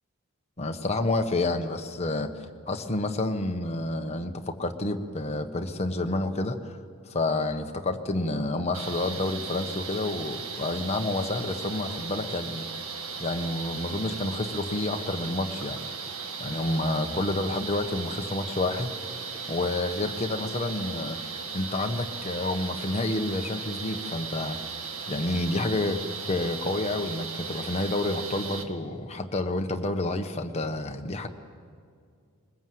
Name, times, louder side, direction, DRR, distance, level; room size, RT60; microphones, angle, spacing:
voice 1, 0.6-6.8 7.1-12.7 13.2-15.8 16.4-18.9 19.5-24.6 25.1-26.0 26.3-31.3, left 2 dB, 30° left, 5 dB, 1.2 m, -29 dB
sound 1, 8.7-28.6, right 5 dB, 70° right, 1.7 m, -37 dB
21.0 x 21.0 x 7.8 m, 2.2 s
head